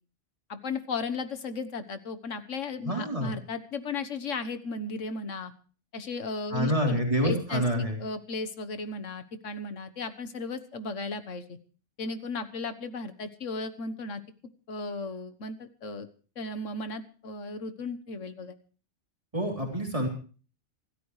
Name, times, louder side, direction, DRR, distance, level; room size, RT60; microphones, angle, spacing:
voice 1, 0.5-5.5 5.9-11.6 12.0-14.2 14.7-16.1 16.4-18.6, left 3 dB, 85° left, 10 dB, 1.6 m, -35 dB
voice 2, 2.8-3.3 6.5-8.0 19.3-20.1, equal, 25° right, 0 dB, 3.8 m, -27 dB
25.5 x 13.0 x 3.2 m, 0.39 s
omnidirectional pair, 1.3 m